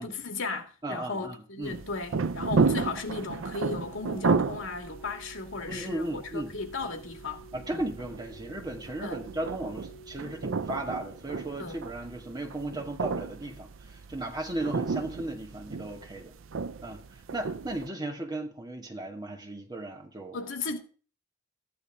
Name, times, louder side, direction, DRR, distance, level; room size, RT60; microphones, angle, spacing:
voice 1, 0.0-7.4 7.7-7.8 9.0-9.2 11.6-11.8 20.3-20.8, left 4 dB, 80° left, 2.2 m, -35 dB
voice 2, 0.8-1.8 5.7-6.5 7.5-16.3 16.8-20.4, right 1 dB, 20° right, 2.4 m, -36 dB
sound 1, 1.6-17.9, right 4 dB, 80° right, 0.5 m, -33 dB
sound 2, 3.6-11.1, right 2 dB, 20° left, 2.3 m, -51 dB
14.5 x 11.0 x 3.7 m
head